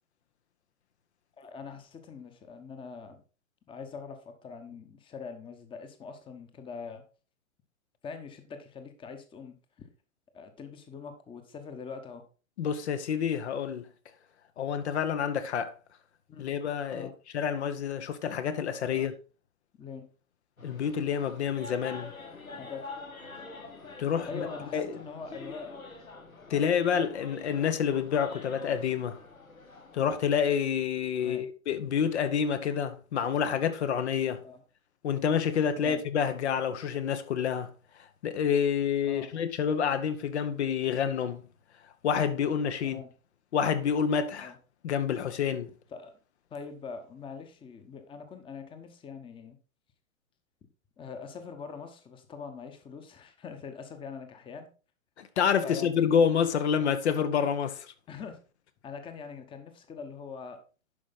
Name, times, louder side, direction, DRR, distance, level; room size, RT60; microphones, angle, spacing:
voice 1, 1.4-3.2 3.7-7.0 8.0-9.9 10.3-12.2 16.3-16.5 16.9-17.1 18.9-19.1 19.8-20.1 22.6-22.8 24.2-25.8 26.5-26.6 31.2-31.4 34.4-34.6 35.8-36.0 39.1-39.3 42.8-43.1 44.4-44.6 45.9-46.2 46.5-49.6 51.0-54.7 55.6-56.2 58.1-58.4 58.8-60.6, left 5 dB, 10° left, 1.0 m, -43 dB
voice 2, 12.6-13.9 14.6-15.7 16.4-17.1 17.3-19.1 20.6-22.1 24.0-24.5 24.7-24.9 26.5-29.2 29.9-34.4 35.0-37.7 38.2-41.4 42.0-43.0 43.5-44.5 44.8-45.7 55.2-57.9, left 7 dB, 55° left, 0.9 m, -28 dB
Zanzibar - auction fish market, 20.6-30.3, left 3 dB, 85° left, 1.9 m, -45 dB
11.0 x 5.2 x 4.0 m
figure-of-eight pair, 110°, 41 cm